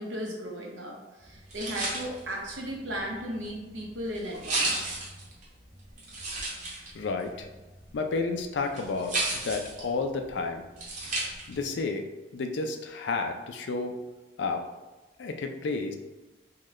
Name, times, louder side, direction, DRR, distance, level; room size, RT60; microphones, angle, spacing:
voice 1, 0.0-5.0, equal, 80° right, -1 dB, 0.8 m, -36 dB
sound 1, 1.2-11.7, right 2 dB, 40° right, 0.9 m, -35 dB
voice 2, 6.9-7.5 7.9-10.6 11.5-12.1 12.3-14.0 14.4-14.6 15.2-16.0, left 3 dB, 70° left, 5 dB, 0.4 m, -31 dB
3.7 x 2.2 x 3.1 m, 1.1 s
head